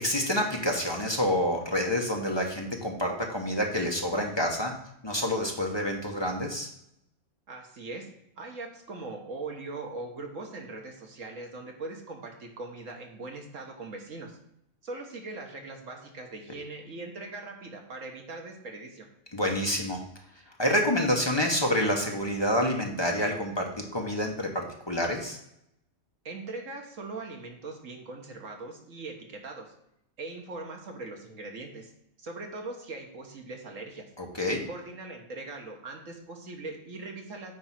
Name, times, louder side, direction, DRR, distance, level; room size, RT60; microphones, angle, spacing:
voice 1, 0.0-4.7 5.0-6.7 19.3-20.0 20.6-25.4 34.2-34.6, left 1 dB, 20° left, 0 dB, 1.0 m, -28 dB
voice 2, 7.5-8.1 8.4-14.4 14.8-19.1 26.2-29.7 30.2-31.9 32.2-34.0 34.7-37.5, right 3 dB, 65° right, 2 dB, 1.7 m, -40 dB
9.4 x 3.5 x 5.9 m, 0.78 s
omnidirectional pair, 1.5 m